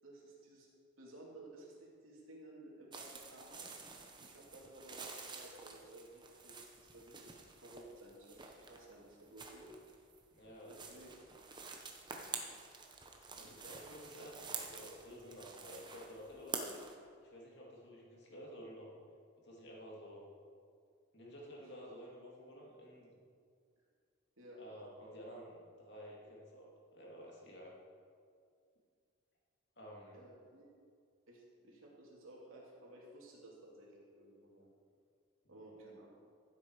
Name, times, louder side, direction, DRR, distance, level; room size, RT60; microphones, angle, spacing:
voice 1, 0.0-0.7 1.0-3.6 4.2-9.7 10.7-11.1 13.4-13.6 24.4-24.6 30.1-30.7 31.3-34.7 35.5-36.1, right 1 dB, 85° right, -3 dB, 2.9 m, -56 dB
sound 1, 2.9-17.0, right 4 dB, 20° right, 0.9 m, -49 dB
voice 2, 10.3-11.0 13.3-16.7 17.2-18.9 19.4-20.2 21.1-23.2 24.6-27.7 29.8-30.2 35.4-35.5, equal, 55° left, -3 dB, 2.6 m, -52 dB
15.5 x 7.9 x 4.8 m, 2.2 s
head